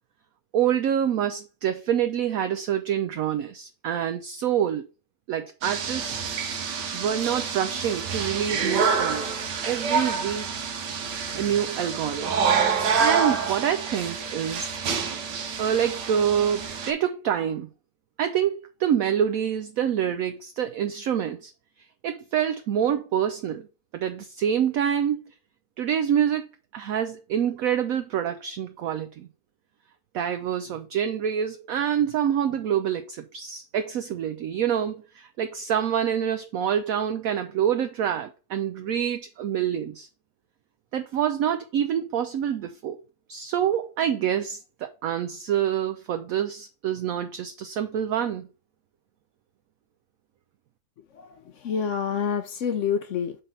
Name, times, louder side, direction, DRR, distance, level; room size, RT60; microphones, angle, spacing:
voice 1, 0.5-4.8 5.3-6.3 6.9-9.2 9.6-10.5 11.4-12.5 13.0-14.8 15.3-17.7 18.2-21.5 22.0-23.7 23.9-25.2 25.8-26.4 26.7-29.3 30.1-40.1 40.9-43.0 43.3-48.5, right 9 dB, 70° right, 0.9 m, -26 dB
sound 1, 5.6-16.9, right 6 dB, 85° right, 1.6 m, -27 dB
voice 2, 51.1-53.4, left 7 dB, 65° left, 0.8 m, -28 dB
5.4 x 3.9 x 5.6 m
omnidirectional pair, 1.8 m